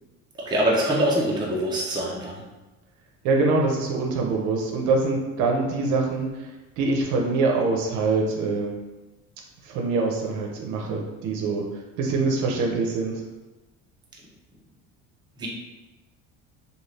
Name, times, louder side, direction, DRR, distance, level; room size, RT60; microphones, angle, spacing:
voice 1, 0.5-2.4 15.4-15.5, right 1 dB, 15° right, -4 dB, 0.6 m, -24 dB
voice 2, 3.2-6.5 6.8-8.7 9.6-11.6 12.0-13.2, right 3 dB, 65° right, 0 dB, 0.7 m, -24 dB
2.6 x 2.4 x 3.2 m, 1.1 s
cardioid pair, 130°, 32 cm